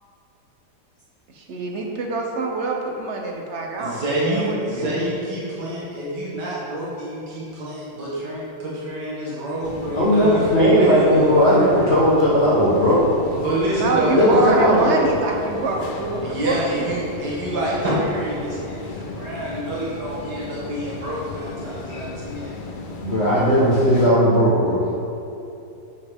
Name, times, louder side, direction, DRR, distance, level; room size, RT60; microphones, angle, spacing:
voice 1, 1.3-4.0 4.2-5.1 13.8-16.8, right 3 dB, 50° right, 1 dB, 1.1 m, -25 dB
voice 2, 3.8-11.8 13.4-14.5 16.2-22.5, right 1 dB, 80° right, -7 dB, 2.2 m, -27 dB
sound 1, 9.6-24.1, left 3 dB, 85° left, 0.4 m, -35 dB
voice 3, 9.9-13.0 14.1-15.0 23.0-25.0, equal, 40° left, -9 dB, 1.4 m, -17 dB
8.3 x 6.7 x 3.6 m, 2.8 s
omnidirectional pair, 1.8 m